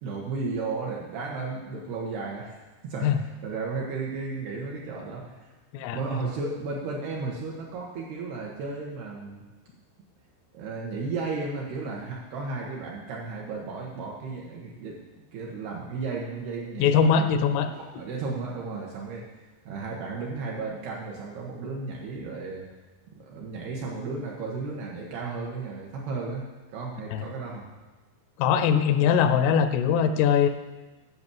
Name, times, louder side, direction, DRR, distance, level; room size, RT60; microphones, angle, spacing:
voice 1, 0.0-5.4 5.9-9.4 10.5-17.3 17.7-19.3 19.7-22.7 23.1-27.6, right 4 dB, 70° right, -2 dB, 2.7 m, -34 dB
voice 2, 16.8-17.7 27.1-27.2 28.4-30.5, left 7 dB, 85° left, 9 dB, 3.2 m, -21 dB
11.0 x 6.9 x 7.2 m, 1.2 s
omnidirectional pair, 5.9 m